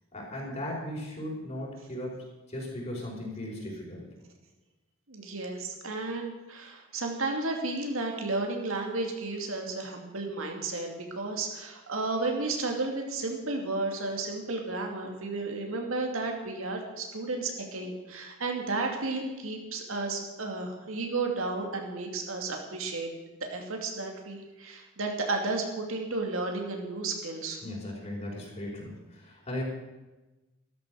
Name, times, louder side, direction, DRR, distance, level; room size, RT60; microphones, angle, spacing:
voice 1, 0.1-4.1 27.6-29.6, left 1 dB, 35° left, -2 dB, 5.0 m, -37 dB
voice 2, 5.1-23.1 23.4-27.6, right 3 dB, 75° right, 2 dB, 2.7 m, -33 dB
13.5 x 13.0 x 6.4 m, 1.1 s
head